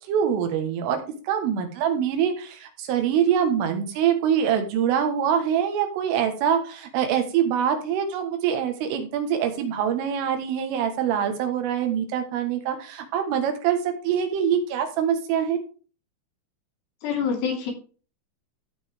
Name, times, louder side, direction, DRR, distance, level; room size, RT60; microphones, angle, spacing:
voice 1, 0.1-1.0 1.3-15.6, right 8 dB, 80° right, 6 dB, 4.1 m, -24 dB
voice 2, 17.0-17.7, left 6 dB, 75° left, -1 dB, 5.5 m, -26 dB
15.5 x 5.4 x 3.6 m, 0.37 s
omnidirectional pair, 5.7 m